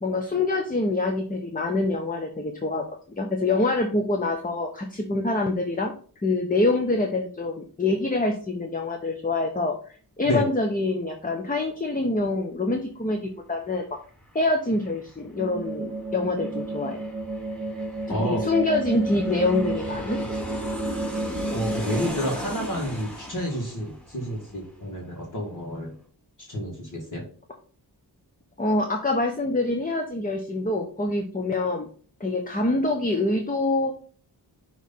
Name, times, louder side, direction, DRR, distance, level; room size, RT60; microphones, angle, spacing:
voice 1, 0.0-2.9 3.2-5.9 6.2-13.9 14.3-17.0 18.1-20.2 28.6-31.9 32.2-33.9, left 2 dB, 20° left, 3 dB, 0.8 m, -25 dB
Aircraft, 13.9-25.2 25.5-25.6, equal, ahead, 2.0 m, -38 dB
sound 1, 15.4-22.1, right 2 dB, 15° right, 1.5 m, -31 dB
voice 2, 18.1-18.4 21.5-25.9 26.5-27.2, equal, 50° left, -2 dB, 2.0 m, -29 dB
6.3 x 3.2 x 5.5 m, 0.43 s
wide cardioid pair, 110°, 41 cm